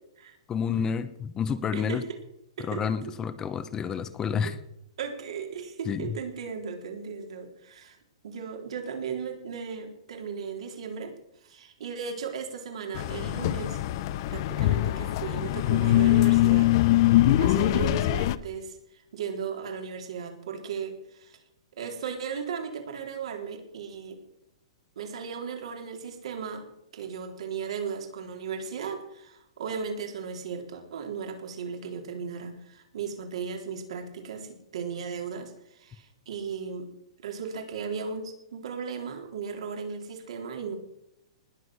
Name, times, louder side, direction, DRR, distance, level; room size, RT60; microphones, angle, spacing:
voice 1, 0.5-2.0 2.6-4.6 5.9-6.1, left 7 dB, 20° left, 13 dB, 1.1 m, -29 dB
voice 2, 5.0-8.0 8.2-11.1 11.4-13.8 14.3-17.1 17.4-21.4 21.8-24.2 25.0-26.7 26.9-36.9 37.2-40.7, right 6 dB, 75° right, 3 dB, 3.8 m, -36 dB
sound 1, 12.9-18.4, left 15 dB, 45° left, 0.7 m, -23 dB
19.5 x 7.7 x 6.5 m, 0.81 s
hypercardioid pair, 145°, 3 cm